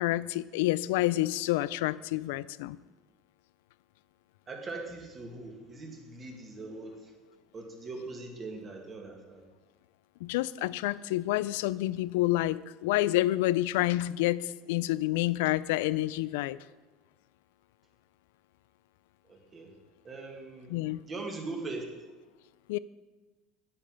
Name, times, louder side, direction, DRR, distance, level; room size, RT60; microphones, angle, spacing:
voice 1, 0.0-2.8 10.2-16.6 20.7-21.0 22.7-22.8, left 16 dB, 90° left, 18 dB, 0.3 m, -28 dB
voice 2, 4.5-7.1 7.5-9.4 19.3-19.7 20.0-21.8, right 3 dB, 30° right, 1 dB, 2.2 m, -41 dB
8.8 x 7.9 x 6.4 m, 1.3 s
supercardioid pair, 120°, 0 cm